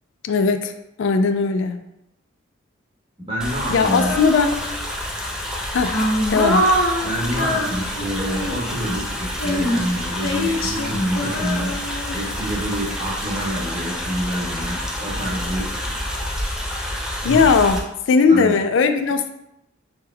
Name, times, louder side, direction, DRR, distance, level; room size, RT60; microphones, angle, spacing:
voice 1, 0.2-0.7 1.0-1.8 3.7-4.6 5.7-6.0 6.3-6.7 17.2-19.3, left 4 dB, 65° left, 8 dB, 0.3 m, -18 dB
voice 2, 3.2-4.1 7.0-11.8 12.1-15.7 17.2-17.4 18.3-18.5, equal, 25° right, -5 dB, 1.3 m, -27 dB
sound 1, 3.4-17.8, left 1 dB, 5° right, 0.4 m, -29 dB
Female singing, 3.9-4.9 5.5-8.8 9.4-12.5, equal, 90° left, 0.8 m, -24 dB
4.3 x 3.4 x 3.3 m, 0.86 s
head